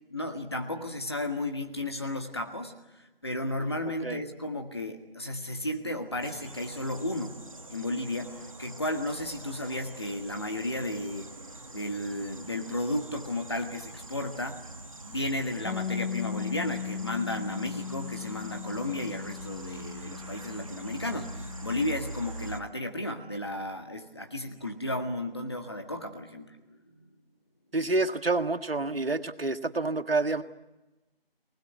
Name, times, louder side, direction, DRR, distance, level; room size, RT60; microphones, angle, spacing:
voice 1, 0.1-7.4 7.7-8.3 8.6-11.3 11.7-14.6 15.0-26.6 27.0-27.1, left 1 dB, 25° left, 5 dB, 1.7 m, -33 dB
sound 1, 6.2-22.6, right 2 dB, 35° right, 1.4 m, -44 dB
Bass guitar, 15.7-21.9, left 7 dB, 75° left, 2.0 m, -37 dB
voice 2, 27.7-30.4, right 3 dB, 70° right, 9 dB, 1.7 m, -28 dB
23.0 x 20.5 x 9.5 m, 1.0 s
figure-of-eight pair, 180°, 30 cm